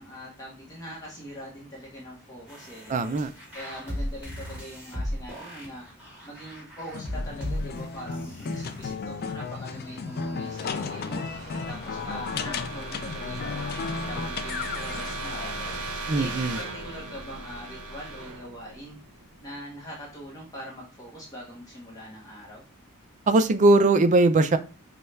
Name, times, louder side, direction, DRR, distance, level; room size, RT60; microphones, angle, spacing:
voice 1, 0.0-3.1 3.5-5.8 6.2-11.2 11.7-13.7 14.1-19.0 19.4-22.6, equal, 15° left, -4 dB, 0.9 m, -42 dB
sound 1, 2.5-8.9, equal, 5° right, 1.8 m, -37 dB
voice 2, 2.9-3.3 16.1-16.6 23.3-24.6, right 2 dB, 35° right, 10 dB, 0.4 m, -20 dB
sound 2, 6.9-15.9, left 5 dB, 45° left, 0.4 m, -34 dB
sound 3, 9.8-19.5, right 2 dB, 80° right, 0.6 m, -38 dB
5.4 x 2.3 x 3.2 m, 0.34 s
head